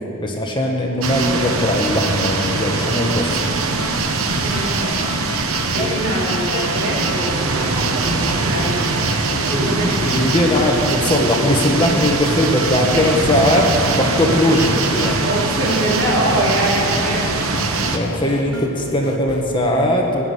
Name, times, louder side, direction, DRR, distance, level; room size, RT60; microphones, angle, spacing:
voice 1, 0.2-3.5 5.8-6.1 9.3-15.3 17.6-20.2, left 1 dB, 25° left, 0 dB, 1.5 m, -19 dB
sound 1, 1.0-18.0, right 3 dB, 80° right, 1.1 m, -22 dB
sound 2, 3.5-19.5, left 2 dB, 85° left, 1.2 m, -33 dB
voice 2, 4.4-5.1 5.5-10.0 12.9-13.1 15.0-17.3, right 1 dB, 60° right, -5 dB, 4.1 m, -24 dB
17.0 x 10.5 x 8.0 m, 2.8 s
head